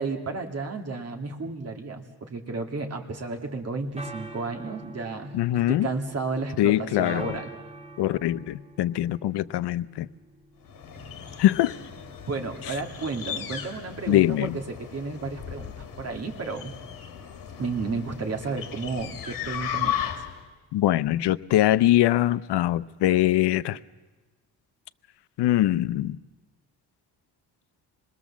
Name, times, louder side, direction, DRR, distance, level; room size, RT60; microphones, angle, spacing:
voice 1, 0.0-5.3 5.7-7.5 12.3-16.7 17.6-20.0, right 4 dB, 35° right, 2.4 m, -32 dB
sound 1, 3.6-22.7, right 2 dB, 15° right, 1.5 m, -48 dB
voice 2, 5.3-5.9 6.6-7.4 8.0-10.1 11.4-11.7 14.1-14.6 20.7-23.8 25.4-26.2, left 14 dB, 75° left, 0.7 m, -22 dB
sound 2, 10.6-20.5, left 9 dB, 55° left, 2.2 m, -36 dB
26.5 x 21.0 x 7.3 m
cardioid pair, 140°, 41 cm